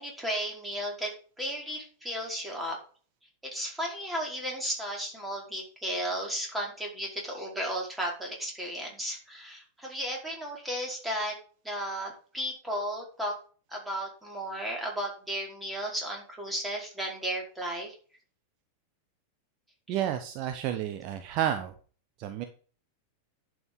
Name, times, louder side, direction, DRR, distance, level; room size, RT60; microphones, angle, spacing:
voice 1, 0.0-2.8 3.4-11.4 11.6-13.3 13.7-18.0, equal, 5° right, -1 dB, 4.8 m, -34 dB
voice 2, 19.9-21.7 22.2-22.4, right 10 dB, 40° right, 7 dB, 1.1 m, -30 dB
11.0 x 6.4 x 5.3 m, 0.41 s
figure-of-eight pair, 90°, 0 cm